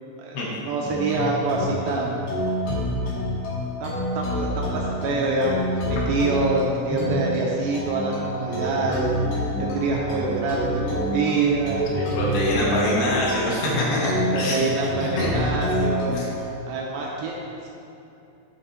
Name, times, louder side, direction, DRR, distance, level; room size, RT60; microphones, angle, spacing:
voice 1, 0.2-2.2 3.8-11.9 12.9-13.0 14.3-16.2 16.7-17.7, right 3 dB, 80° right, -2 dB, 2.3 m, -26 dB
village main theme, 0.8-16.4, equal, 60° left, 2.5 m, -28 dB
voice 2, 11.9-14.7 15.0-15.3 16.1-16.3, left 1 dB, 75° left, -5 dB, 3.0 m, -25 dB
9.2 x 4.0 x 4.3 m, 2.9 s
omnidirectional pair, 4.7 m